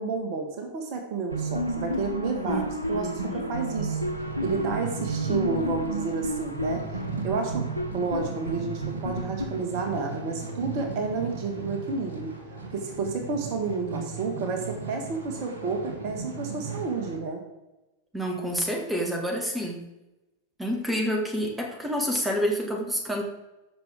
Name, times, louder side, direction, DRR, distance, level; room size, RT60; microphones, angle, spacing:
voice 1, 0.0-4.0 4.4-6.8 7.2-7.7 7.9-12.3 12.7-17.4, right 4 dB, 45° right, 4 dB, 1.7 m, -30 dB
sound 1, 1.3-10.1, right 1 dB, 85° right, 1.0 m, -31 dB
voice 2, 2.5-3.5 13.8-14.4 18.1-19.9 20.6-23.2, equal, 5° right, 1 dB, 2.0 m, -29 dB
sound 2, 4.1-17.2, right 4 dB, 65° right, 1.8 m, -37 dB
14.5 x 6.3 x 3.7 m, 1.0 s
figure-of-eight pair, 90°, 0 cm